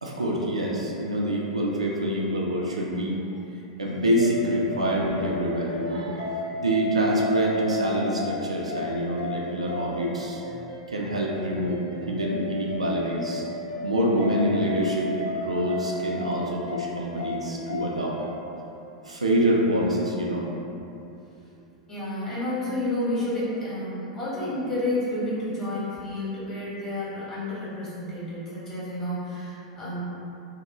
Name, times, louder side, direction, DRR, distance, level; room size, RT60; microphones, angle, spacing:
voice 1, 0.0-3.2 3.8-6.3 6.6-10.4 10.9-11.8 12.1-13.4 13.8-18.2 19.0-20.4, equal, 85° right, -3 dB, 0.4 m, -26 dB
sound 1, 4.2-18.3, left 1 dB, 55° left, 0.6 m, -35 dB
voice 2, 21.9-30.0, left 1 dB, 20° left, -11 dB, 1.3 m, -30 dB
2.7 x 2.1 x 2.9 m, 2.8 s
figure-of-eight pair, 95°, 3 cm